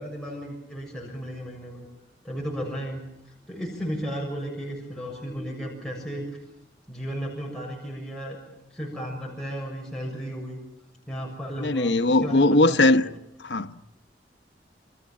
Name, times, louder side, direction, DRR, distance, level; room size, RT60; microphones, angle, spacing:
voice 1, 0.0-1.8 2.2-3.0 3.5-6.2 6.9-8.4 8.7-10.6 11.1-13.1, equal, 5° left, 6.8 m, -34 dB
voice 2, 11.6-13.1 13.4-13.8, left 2 dB, 80° left, 1.1 m, -20 dB
28.5 x 27.5 x 7.3 m
head